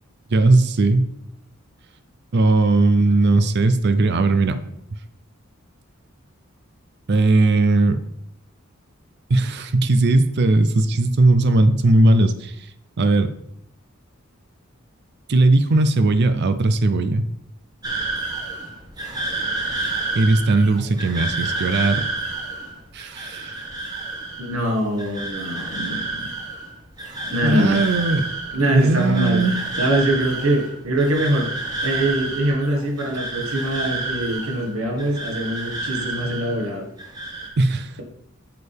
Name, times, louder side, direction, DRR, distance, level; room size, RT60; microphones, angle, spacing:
voice 1, 0.3-1.1 2.3-4.6 7.1-8.0 9.3-12.6 13.0-13.3 15.3-17.2 19.8-22.0 22.9-23.5 27.4-28.3 28.7-29.5 37.6-38.0, right 2 dB, 50° right, 11 dB, 0.5 m, -18 dB
sound 1, 17.8-36.7 37.0-37.5, right 3 dB, 20° right, 1.5 m, -30 dB
voice 2, 24.4-26.3 27.2-27.8 28.5-31.5 31.8-36.9, right 1 dB, 90° right, 2 dB, 1.7 m, -23 dB
8.4 x 6.6 x 3.5 m, 0.76 s
head